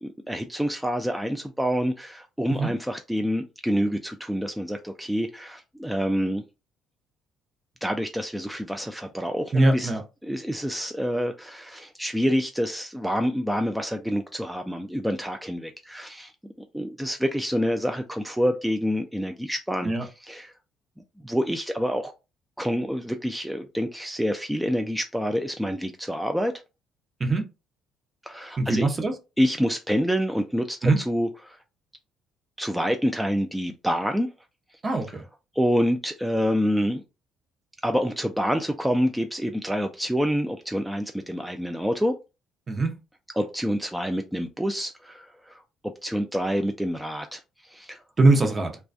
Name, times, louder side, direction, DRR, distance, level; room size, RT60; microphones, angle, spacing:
voice 1, 0.0-6.4 7.8-9.9 10.2-16.3 16.7-20.5 21.2-22.1 22.6-26.5 28.2-28.9 29.4-31.6 32.6-34.3 35.5-37.0 37.8-42.1 43.4-45.6 46.0-48.0, equal, 5° right, 0.3 m, -27 dB
voice 2, 9.5-10.0 19.8-20.0 27.2-27.5 28.6-29.1 30.8-31.0 34.8-35.2 42.7-43.0 48.2-48.8, right 2 dB, 35° right, 0.7 m, -22 dB
2.3 x 2.2 x 2.5 m
hypercardioid pair, 55°, 0 cm